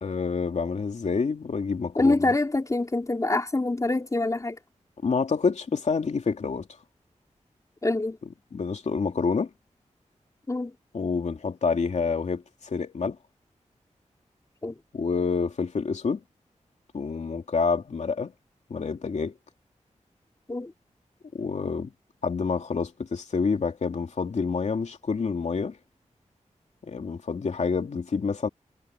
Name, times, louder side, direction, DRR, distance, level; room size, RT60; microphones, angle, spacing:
voice 1, 0.0-2.4 5.0-6.7 8.5-9.5 10.9-13.2 14.9-16.2 16.9-18.3 18.7-19.3 21.3-21.9 22.2-25.8 26.8-28.5, left 5 dB, 65° left, 2.9 m, -28 dB
voice 2, 2.0-4.6 7.8-8.2 10.5-10.7 14.6-14.7 20.5-20.7, left 2 dB, 25° left, 4.5 m, -25 dB
wide cardioid pair, 135°, 13 cm